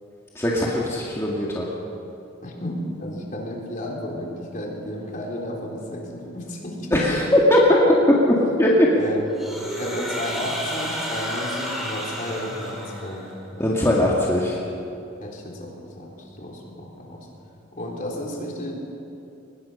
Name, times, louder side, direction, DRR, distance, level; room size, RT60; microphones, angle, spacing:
voice 1, 0.4-1.7 6.9-7.6 8.3-8.9 13.6-14.6, left 1 dB, 15° left, -4 dB, 2.1 m, -20 dB
voice 2, 2.4-7.4 8.9-9.3 9.8-14.0 15.2-17.3 17.7-18.7, equal, 40° left, -1 dB, 3.9 m, -33 dB
sound 1, 9.4-13.4, equal, ahead, 4.2 m, -31 dB
23.5 x 20.5 x 5.7 m, 2.7 s
head